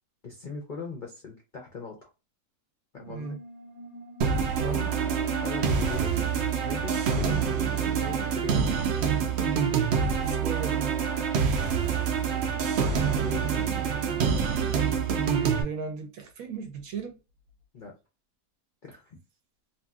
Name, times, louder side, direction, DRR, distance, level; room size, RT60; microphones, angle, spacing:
voice 1, 0.2-2.1 2.9-3.4 4.6-4.9 5.4-7.5 8.0-8.8 12.5-13.8 17.7-17.9 18.8-19.2, left 4 dB, 60° left, 0.5 m, -40 dB
sound 1, 2.9-8.2, left 2 dB, 15° right, 0.9 m, -47 dB
voice 2, 3.1-3.4 4.6-4.8 10.2-10.9 15.4-17.2, right 6 dB, 70° right, 1.0 m, -36 dB
sound 2, 4.2-15.6, right 6 dB, 90° right, 0.5 m, -26 dB
2.8 x 2.7 x 2.3 m
omnidirectional pair, 1.8 m